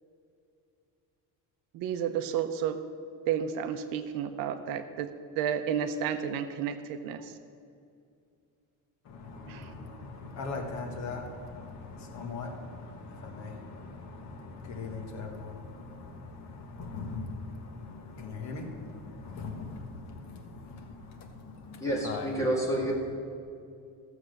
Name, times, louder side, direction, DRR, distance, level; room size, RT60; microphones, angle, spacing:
voice 1, 1.7-2.8 3.3-5.1 5.4-7.3 9.5-9.7, right 8 dB, 60° right, 9 dB, 0.8 m, -31 dB
voice 2, 9.0-20.2 21.4-22.3, left 3 dB, 45° left, 3 dB, 1.5 m, -40 dB
voice 3, 21.8-22.9, right 1 dB, 10° left, -3 dB, 2.0 m, -29 dB
14.5 x 7.1 x 6.5 m, 2.5 s
cardioid pair, 175°, 38 cm